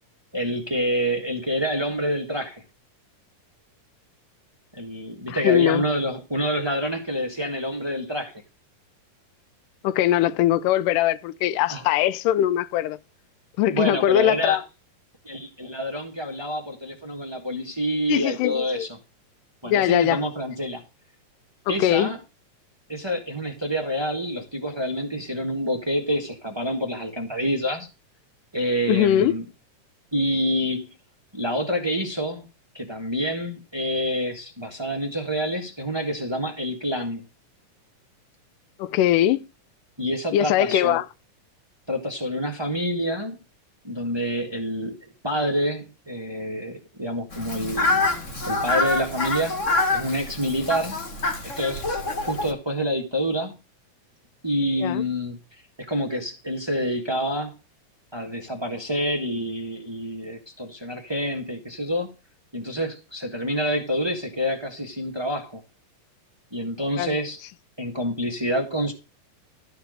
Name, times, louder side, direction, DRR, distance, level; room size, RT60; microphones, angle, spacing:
voice 1, 0.3-2.6 4.7-8.4 11.7-11.8 13.7-14.6 15.2-19.0 19.6-20.8 21.7-22.2 22.9-27.9 28.5-29.4 30.1-30.9 31.3-32.5 32.7-37.2 40.0-41.0 41.9-43.4 43.8-45.0 45.2-48.0 48.5-49.6 49.9-51.0 51.6-51.8 52.2-53.6 54.4-55.4 55.9-57.6 58.1-62.1 62.5-65.6 66.5-67.4 67.8-68.9, equal, 40° right, 0.3 m, -27 dB
voice 2, 5.3-5.8 9.8-13.0 13.6-14.6 18.1-18.9 19.7-20.2 21.7-22.1 28.9-29.4 38.8-39.5 40.3-41.0 54.8-55.0 67.0-67.2, left 12 dB, 80° left, 2.2 m, -21 dB
Fowl, 47.3-52.5, left 2 dB, 40° left, 1.1 m, -26 dB
13.5 x 4.7 x 6.5 m
omnidirectional pair, 3.9 m